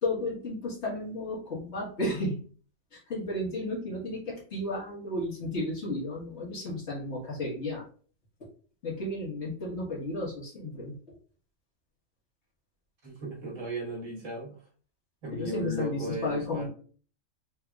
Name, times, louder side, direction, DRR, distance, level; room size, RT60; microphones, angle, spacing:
voice 1, 0.0-2.4 2.9-7.8 8.8-11.1 15.3-16.7, left 2 dB, 60° left, -4 dB, 1.8 m, -33 dB
voice 2, 13.0-14.6 15.2-16.7, right 2 dB, 75° right, -3 dB, 1.9 m, -36 dB
4.4 x 3.3 x 2.3 m, 0.43 s
omnidirectional pair, 1.3 m